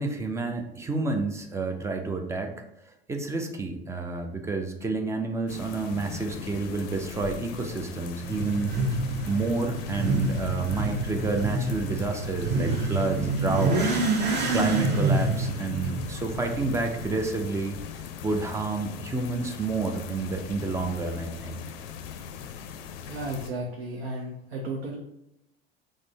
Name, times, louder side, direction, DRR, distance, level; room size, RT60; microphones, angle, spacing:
voice 1, 0.0-2.5 3.1-8.7 9.2-14.0 14.5-17.8 18.2-21.6, right 3 dB, 10° right, 4 dB, 0.3 m, -29 dB
sound 1, 5.5-23.5, left 7 dB, 60° left, 0.5 m, -40 dB
Motorcycle / Accelerating revving vroom, 8.2-17.1, right 2 dB, 30° right, 0.8 m, -27 dB
voice 2, 23.1-25.0, right 2 dB, 85° right, -1 dB, 0.6 m, -34 dB
3.6 x 2.0 x 3.3 m, 0.84 s
hypercardioid pair, 80°, 32 cm